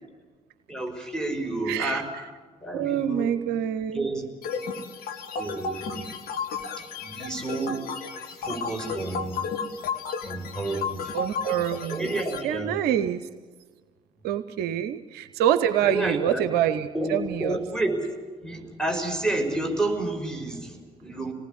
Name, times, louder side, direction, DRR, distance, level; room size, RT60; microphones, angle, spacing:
voice 1, 0.7-2.1 2.6-3.3 3.9-4.3 5.4-6.1 6.8-7.8 8.5-9.5 10.2-11.2 11.9-12.8 15.8-16.5 16.9-18.1 18.4-21.3, right 2 dB, 5° left, 1 dB, 5.3 m, -30 dB
voice 2, 1.7-2.2 2.7-4.1 11.1-13.3 14.2-17.6, right 10 dB, 55° right, 11 dB, 0.8 m, -26 dB
sound 1, 4.4-12.4, left 5 dB, 50° left, 1.8 m, -33 dB
26.0 x 19.0 x 8.5 m, 1.4 s
figure-of-eight pair, 50°, 19 cm